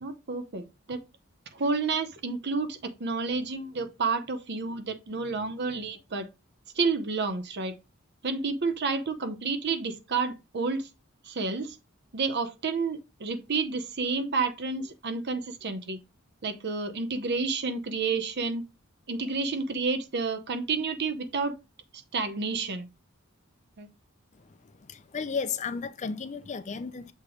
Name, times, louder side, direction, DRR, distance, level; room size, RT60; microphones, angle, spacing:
voice 1, 0.0-1.0 1.5-6.3 6.8-7.8 8.2-10.9 11.2-11.8 12.1-16.0 16.4-18.6 19.1-21.5 22.1-22.9 23.8-23.9, right 4 dB, 55° right, 0.8 m, -30 dB
voice 2, 24.3-27.1, left 5 dB, 35° left, 0.5 m, -34 dB
6.6 x 3.0 x 4.9 m
head